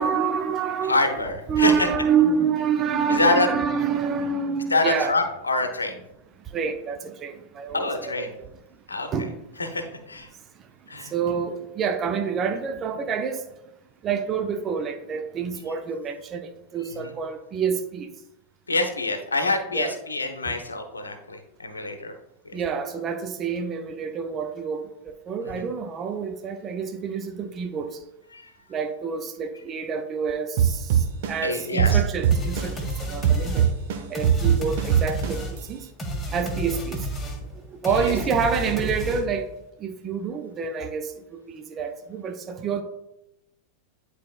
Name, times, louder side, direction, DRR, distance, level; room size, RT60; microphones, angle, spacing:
voice 1, 0.0-1.0 1.5-5.2 6.4-8.5 9.1-9.3 11.0-13.4 14.0-18.1 19.7-20.0 22.5-28.0 28.7-33.7 34.1-35.9 36.3-37.1 37.5-39.5 39.8-42.8, right 6 dB, 25° right, 7 dB, 0.6 m, -27 dB
voice 2, 0.9-1.9 3.1-3.5 4.7-6.0 7.7-8.3 8.9-9.1 9.6-10.3 10.9-11.1 17.0-17.1 18.7-22.1 22.4-22.5 25.5-25.6 28.3-28.5 31.4-32.0 38.0-38.1, left 2 dB, 75° left, 5 dB, 0.8 m, -26 dB
sound 1, 30.6-32.9 33.2-35.6, right 9 dB, 55° right, 0.8 m, -20 dB
sound 2, 32.3-39.5, right 1 dB, 10° left, 1.4 m, -32 dB
10.0 x 4.2 x 2.4 m, 0.91 s
figure-of-eight pair, 90°, 0 cm